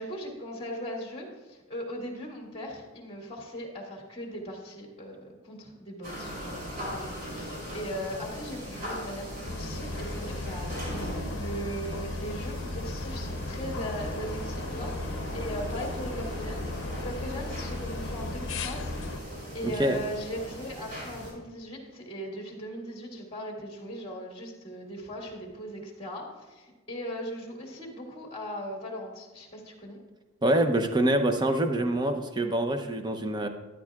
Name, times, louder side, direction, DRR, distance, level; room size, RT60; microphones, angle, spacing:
voice 1, 0.0-10.7 11.0-18.9 19.2-30.0, equal, 30° left, -1 dB, 2.1 m, -39 dB
sound 1, 6.0-21.3, equal, 45° right, 3.6 m, -39 dB
sound 2, 9.5-19.2, left 2 dB, 60° left, 0.8 m, -36 dB
voice 2, 30.4-33.5, right 1 dB, 20° right, 7 dB, 0.7 m, -25 dB
13.0 x 10.5 x 2.4 m, 1.2 s
head